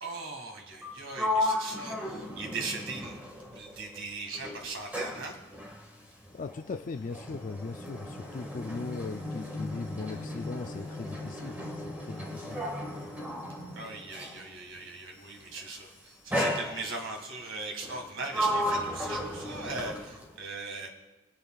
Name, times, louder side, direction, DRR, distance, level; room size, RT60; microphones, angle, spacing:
voice 1, 0.0-3.2 3.5-5.3 13.7-20.9, right 3 dB, 60° right, 2 dB, 1.9 m, -39 dB
Sliding door, 0.7-4.0 4.3-14.5 15.4-15.7 16.3-17.2 17.8-20.3, left 1 dB, 10° right, 1.7 m, -35 dB
voice 2, 6.3-12.6, left 4 dB, 40° left, 7 dB, 0.3 m, -39 dB
24.5 x 8.4 x 2.4 m, 1.1 s
head